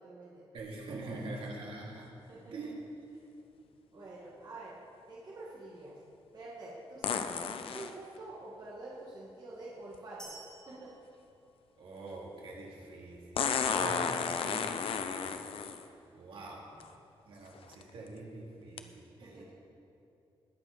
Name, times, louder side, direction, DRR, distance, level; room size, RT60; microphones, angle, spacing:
voice 1, 0.0-0.4 1.0-1.5 2.3-2.5 3.9-4.8 5.1-6.0 6.3-10.4 10.7-10.9 13.5-14.5 19.2-19.5, right 2 dB, 45° right, -6 dB, 1.8 m, -47 dB
voice 2, 0.5-2.1 2.5-2.8 11.8-14.0 14.4-15.2 16.1-16.7 17.3-19.5, right 2 dB, 65° right, -2 dB, 2.5 m, -44 dB
sound 1, 0.6-0.7 7.0-7.9 9.9-10.0 13.4-15.8 16.8-16.9 17.5-17.8 18.8-18.9, left 6 dB, 70° left, 0.7 m, -33 dB
sound 2, 10.2-12.1, right 2 dB, 5° left, 2.8 m, -53 dB
20.0 x 7.7 x 5.0 m, 2.6 s
wide cardioid pair, 175°, 10 cm